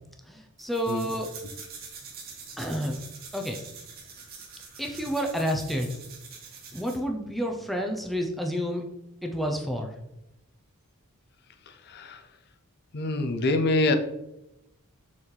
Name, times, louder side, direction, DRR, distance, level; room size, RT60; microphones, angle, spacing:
voice 1, 0.3-1.3 2.6-3.0 3.3-3.6 4.8-6.0 6.7-8.8 9.2-9.9, equal, ahead, 2 dB, 0.6 m, -29 dB
sound 1, 0.6-7.1, right 5 dB, 40° right, 1.3 m, -45 dB
voice 2, 11.9-12.2 12.9-14.0, left 2 dB, 45° left, 8 dB, 0.5 m, -25 dB
7.1 x 4.1 x 3.3 m, 0.90 s
head